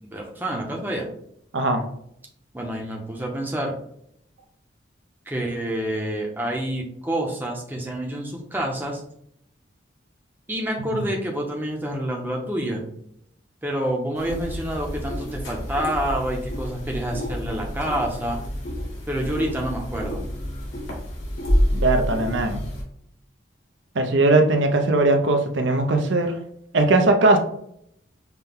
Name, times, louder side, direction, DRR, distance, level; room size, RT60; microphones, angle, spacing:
voice 1, 0.1-1.1 2.5-3.8 5.3-9.0 10.5-12.8 13.6-18.4 19.1-20.2, right 1 dB, 10° right, 0 dB, 0.7 m, -28 dB
sound 1, 14.1-22.8, equal, 70° left, 1.6 m, -28 dB
voice 2, 21.7-22.6 23.9-26.4 26.7-27.4, right 2 dB, 75° right, 5 dB, 0.6 m, -19 dB
5.8 x 2.2 x 3.5 m, 0.71 s
head